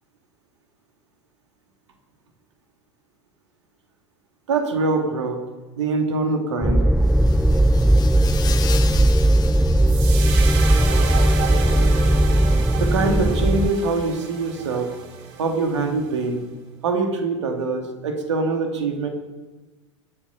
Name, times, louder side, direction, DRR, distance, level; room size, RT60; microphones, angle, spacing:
voice 1, 4.5-5.4 5.8-6.8 12.7-14.9 15.4-16.4 16.8-19.1, right 3 dB, 70° right, 4 dB, 2.4 m, -23 dB
sound 1, 6.6-13.7, right 1 dB, ahead, 0.4 m, -17 dB
sound 2, 7.1-10.9, left 7 dB, 25° left, 1.6 m, -36 dB
sound 3, 9.9-16.3, right 5 dB, 50° right, 3.0 m, -32 dB
24.0 x 8.8 x 5.7 m, 1.2 s
figure-of-eight pair, 85°, 16 cm